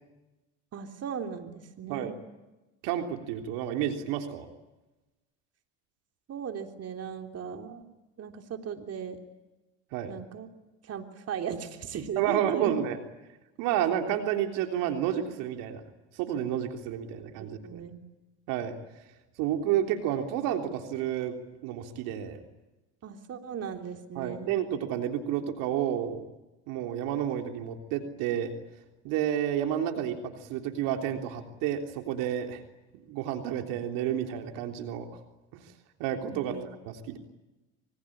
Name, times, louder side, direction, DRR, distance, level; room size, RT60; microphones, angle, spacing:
voice 1, 0.7-2.1 6.3-7.8 8.2-9.2 10.1-10.5 10.8-12.7 17.6-18.1 23.0-24.6 36.3-36.7, right 7 dB, 45° right, 4 dB, 3.5 m, -37 dB
voice 2, 2.8-4.5 9.9-10.1 12.2-13.0 13.6-15.9 16.1-17.8 18.5-18.8 19.4-21.3 21.6-22.4 24.2-26.2 26.7-28.5 29.0-32.6 32.9-35.2 36.0-36.6 36.8-37.2, right 10 dB, 70° right, 4 dB, 3.5 m, -30 dB
27.0 x 24.0 x 8.8 m, 1.0 s
hypercardioid pair, 80°, 35 cm